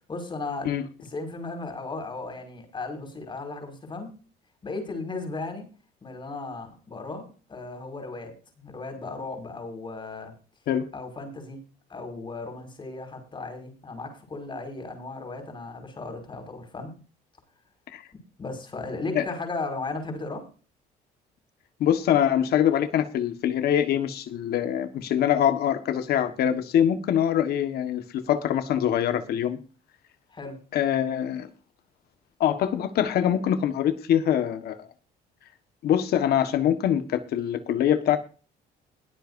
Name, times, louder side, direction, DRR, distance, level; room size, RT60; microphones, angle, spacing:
voice 1, 0.1-0.7 1.0-4.1 4.6-5.7 6.0-10.3 10.9-11.6 11.9-16.9 18.4-20.4 30.3-30.6, left 3 dB, 30° left, 4 dB, 5.6 m, -36 dB
voice 2, 21.8-29.6 30.7-31.5 32.4-34.9 35.8-38.2, left 10 dB, 70° left, 9 dB, 1.5 m, -24 dB
21.5 x 8.1 x 2.7 m, 0.36 s
cardioid pair, 110°, 17 cm